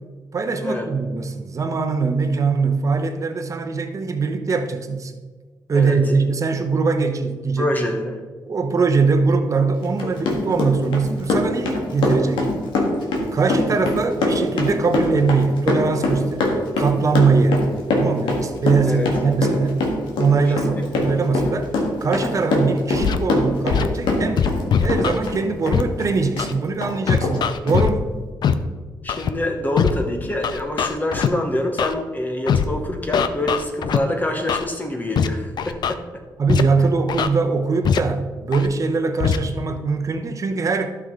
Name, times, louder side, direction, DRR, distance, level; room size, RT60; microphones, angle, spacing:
voice 1, 0.3-5.1 5.7-7.7 8.5-12.5 13.3-17.7 18.0-19.9 20.2-21.7 22.0-28.1 36.4-40.9, right 4 dB, 40° right, 7 dB, 1.0 m, -21 dB
voice 2, 7.6-8.2 18.8-19.1 20.6-20.7 29.0-36.2, left 1 dB, 20° left, 3 dB, 1.2 m, -26 dB
Run, 9.8-24.6 24.9-26.5 26.8-26.9 27.2-27.4 27.7-27.8, left 2 dB, 90° left, 1.7 m, -22 dB
Scratching (performance technique), 23.0-23.2 23.7-23.9 24.4-25.2 25.7-25.8 26.4-26.5 27.1-27.9 28.4-28.5 29.1-29.3 29.8-29.9 30.4-31.3 31.8-31.9 32.5-32.7 33.1-34.0 34.5-34.6 35.2-35.3 35.6-35.9 36.5-36.6 37.1-37.3 37.8-38.0 38.5-38.7 39.2-39.4, left 7 dB, 65° left, 0.5 m, -20 dB
12.0 x 6.0 x 3.8 m, 1.4 s
cardioid pair, 90°, 8 cm